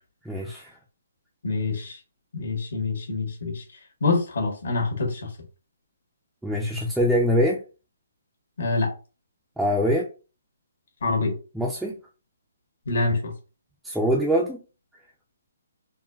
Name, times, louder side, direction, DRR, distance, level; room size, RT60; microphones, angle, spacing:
voice 1, 0.2-0.8 6.4-7.6 9.6-10.1 11.5-12.0 13.8-14.6, equal, ahead, -3 dB, 0.4 m, -23 dB
voice 2, 1.4-2.0 2.3-3.6 4.0-5.3 8.6-8.9 11.0-11.3 12.9-13.3, left 3 dB, 70° left, 3 dB, 1.2 m, -25 dB
3.8 x 2.2 x 2.3 m, 0.34 s
hypercardioid pair, 155°, 0 cm